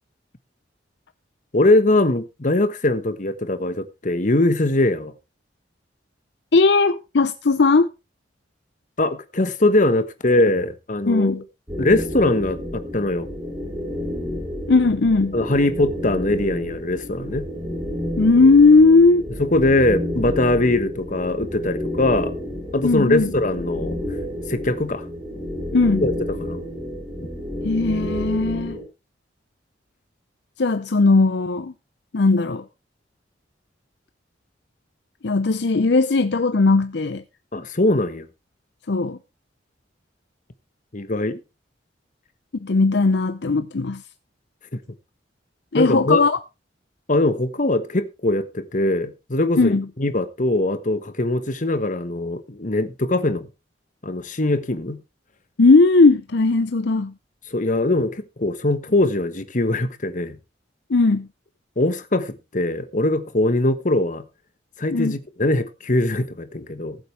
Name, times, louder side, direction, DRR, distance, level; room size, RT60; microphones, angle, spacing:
voice 1, 1.5-5.1 9.0-11.3 11.8-13.3 15.3-17.5 19.4-22.3 22.7-24.0 24.5-25.1 26.0-26.1 26.4-26.6 37.5-38.3 40.9-41.4 44.7-44.8 45.7-46.2 47.1-53.5 54.0-55.0 57.5-60.4 61.8-64.2 64.8-67.0, left 2 dB, 45° left, 1.3 m, -21 dB
voice 2, 6.5-7.9 11.1-11.4 14.7-15.4 18.2-19.2 22.8-23.3 25.7-26.1 27.6-28.8 30.6-31.7 32.1-32.7 35.2-37.2 38.9-39.2 42.6-44.0 45.7-46.4 49.6-49.9 55.6-57.1 60.9-61.3 64.9-65.2, left 3 dB, 65° left, 0.6 m, -17 dB
sound 1, 11.7-28.8, left 1 dB, 20° right, 5.3 m, -30 dB
19.0 x 7.9 x 3.3 m
head